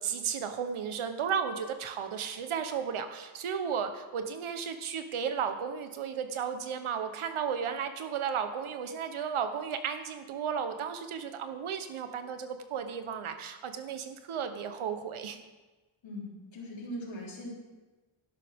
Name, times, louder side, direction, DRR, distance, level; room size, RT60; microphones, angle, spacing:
voice 1, 0.0-15.4, right 7 dB, 75° right, 8 dB, 1.1 m, -34 dB
voice 2, 16.0-17.5, equal, 65° left, -4 dB, 3.6 m, -40 dB
12.0 x 11.0 x 3.7 m, 1.2 s
wide cardioid pair, 135°, 49 cm